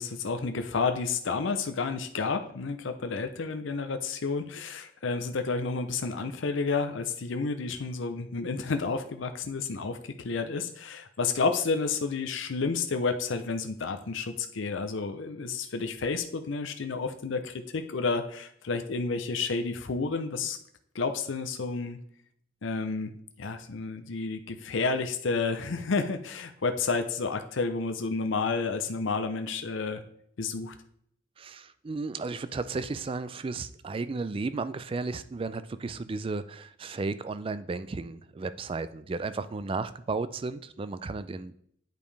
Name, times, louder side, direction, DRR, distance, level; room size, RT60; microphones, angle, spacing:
voice 1, 0.0-20.6 20.9-22.0 22.6-23.1 23.4-30.0 30.4-30.7, left 4 dB, 65° left, 8 dB, 0.6 m, -30 dB
voice 2, 31.4-41.6, right 3 dB, 25° right, 13 dB, 0.3 m, -34 dB
9.2 x 5.1 x 3.3 m, 0.67 s
head